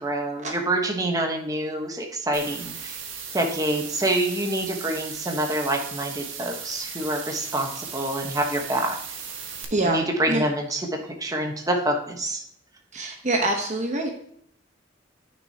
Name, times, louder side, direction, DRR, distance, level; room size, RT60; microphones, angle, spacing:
voice 1, 0.0-3.0 3.3-9.0 9.8-10.8 11.2-12.4, right 1 dB, 20° right, 2 dB, 1.1 m, -26 dB
sound 1, 2.3-9.6, right 6 dB, 85° right, 1.4 m, -37 dB
voice 2, 9.7-10.5 12.9-14.1, right 2 dB, 40° right, 3 dB, 1.0 m, -25 dB
9.8 x 6.4 x 2.8 m, 0.67 s
head